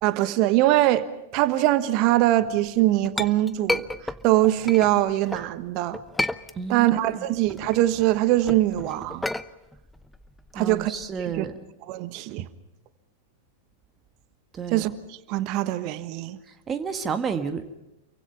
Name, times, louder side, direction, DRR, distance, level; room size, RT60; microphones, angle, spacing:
voice 1, 0.0-1.1 1.3-6.0 6.7-9.3 10.5-10.9 11.2-11.4 11.9-12.5 14.7-14.9 15.3-16.4, right 15 dB, 45° right, 1.3 m, -22 dB
Chink clink, 2.6-5.5 5.9-7.0 7.3-11.4, left 2 dB, 5° left, 0.8 m, -32 dB
voice 2, 6.5-7.3 10.5-11.6 14.5-14.9 16.5-17.7, right 6 dB, 25° right, 1.6 m, -31 dB
28.5 x 23.5 x 5.7 m
figure-of-eight pair, 95°, 0 cm